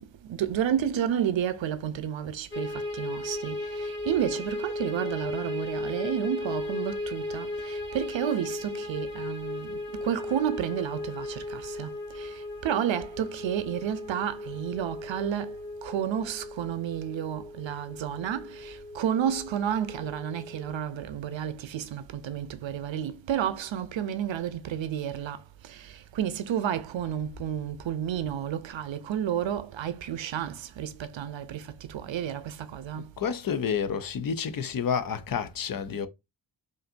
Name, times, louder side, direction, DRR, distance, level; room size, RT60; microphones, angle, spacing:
voice 1, 0.0-33.1, right 9 dB, 85° right, 0.7 m, -31 dB
sound 1, 2.5-20.8, left 2 dB, 25° left, 1.6 m, -36 dB
voice 2, 33.2-36.1, left 7 dB, 50° left, 0.6 m, -29 dB
5.2 x 2.6 x 2.6 m
wide cardioid pair, 120°, 44 cm